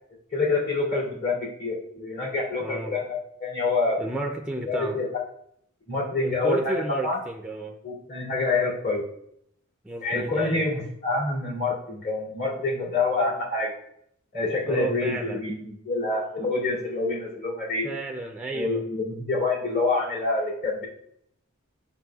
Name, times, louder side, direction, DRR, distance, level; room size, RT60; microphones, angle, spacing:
voice 1, 0.3-4.0 4.7-5.1 5.9-7.2 7.8-9.0 10.0-13.7 14.3-17.9 18.5-20.9, left 3 dB, 50° left, -6 dB, 2.4 m, -27 dB
voice 2, 2.6-3.0 4.0-5.0 6.2-7.8 9.8-10.7 14.6-15.4 17.8-18.8, right 2 dB, 5° right, 2 dB, 0.4 m, -32 dB
7.5 x 5.8 x 2.3 m, 0.71 s
head